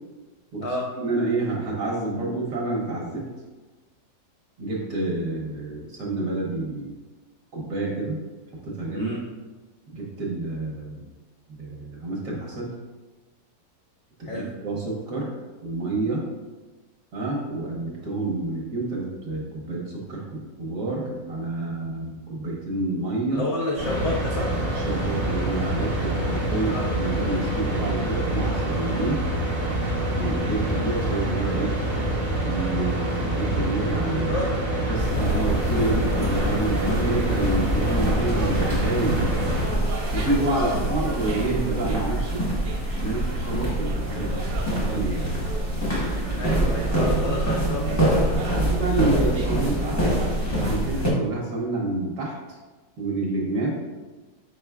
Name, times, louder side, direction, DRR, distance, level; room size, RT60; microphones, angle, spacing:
voice 1, 1.0-3.3 4.6-6.9 7.5-8.2 8.6-9.1 9.9-11.1 11.5-12.7 14.2-15.3 15.6-16.2 17.1-23.4 24.7-29.2 30.1-31.8 32.4-34.3 34.9-39.3 40.1-42.4 43.0-44.4 44.9-45.3 48.5-52.3 53.0-53.8, right 2 dB, 60° right, -2 dB, 1.0 m, -28 dB
voice 2, 23.3-24.5 26.7-26.9 34.1-34.6 40.5-40.7 46.4-48.6, left 1 dB, 80° left, -2 dB, 0.6 m, -30 dB
sound 1, 23.8-39.7, right 1 dB, 40° right, 0.4 m, -26 dB
sound 2, 35.0-51.1, right 1 dB, 20° left, 0.5 m, -25 dB
sound 3, 36.0-50.8, right 4 dB, 75° right, 1.1 m, -39 dB
4.7 x 4.4 x 2.3 m, 1.2 s
omnidirectional pair, 2.0 m